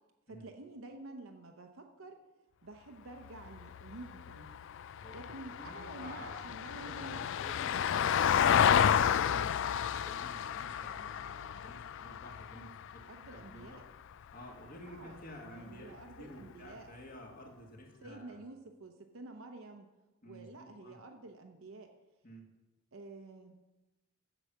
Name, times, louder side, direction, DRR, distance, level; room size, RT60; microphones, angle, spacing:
voice 1, 0.3-2.2 2.6-4.6 5.1-7.3 13.1-13.8 14.9-16.9 18.0-19.9 20.2-21.9 22.9-23.6, right 2 dB, 65° right, 4 dB, 0.8 m, -49 dB
Vehicle, 3.2-13.7 16.0-16.1, left 8 dB, 60° left, 0.3 m, -31 dB
voice 2, 5.0-13.9 14.3-18.4 20.2-21.0 22.2-22.5, equal, 40° left, 1 dB, 1.9 m, -51 dB
8.0 x 7.0 x 7.3 m, 1.1 s
head